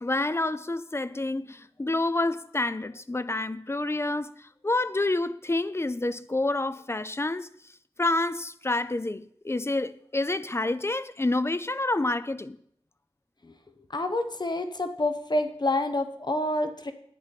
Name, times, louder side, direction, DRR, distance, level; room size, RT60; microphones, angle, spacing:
voice 1, 0.0-7.5 8.0-12.6, left 2 dB, 25° left, 0.5 m, -28 dB
voice 2, 13.9-16.9, left 1 dB, 45° left, 1.0 m, -28 dB
12.0 x 9.5 x 4.2 m
wide cardioid pair, 75°, 10 cm